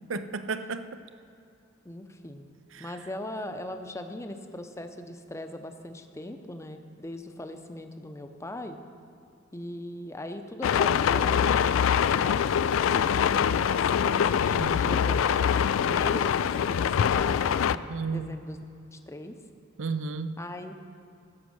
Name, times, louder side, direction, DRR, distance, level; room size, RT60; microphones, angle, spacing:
voice 1, 0.1-1.0 2.7-2.9 14.6-15.0 17.9-18.3 19.8-20.4, right 4 dB, 75° right, 11 dB, 0.6 m, -33 dB
voice 2, 1.8-2.5 2.8-8.8 9.5-12.6 12.9-13.1 13.3-18.6 18.9-19.4 20.4-20.7, left 1 dB, 15° left, 7 dB, 0.7 m, -40 dB
sound 1, 10.6-17.8, left 8 dB, 90° left, 0.3 m, -24 dB
15.5 x 6.3 x 6.3 m, 2.5 s
head